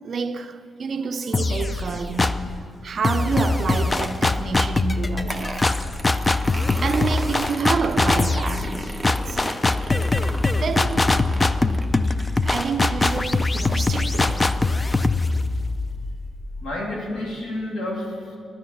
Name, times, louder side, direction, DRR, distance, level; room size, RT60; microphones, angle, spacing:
voice 1, 0.0-2.5 2.8-5.7 6.8-9.0 9.3-9.7 10.5-11.3 12.4-14.6, right 5 dB, 45° right, 0.5 m, -28 dB
sound 1, 1.3-2.6 3.0-16.7, left 3 dB, 15° left, 0.3 m, -22 dB
sound 2, 5.3-14.5, right 1 dB, ahead, 0.8 m, -37 dB
voice 2, 16.6-18.4, left 1 dB, 85° left, 2.3 m, -30 dB
10.5 x 9.3 x 6.0 m
wide cardioid pair, 160°, 0 cm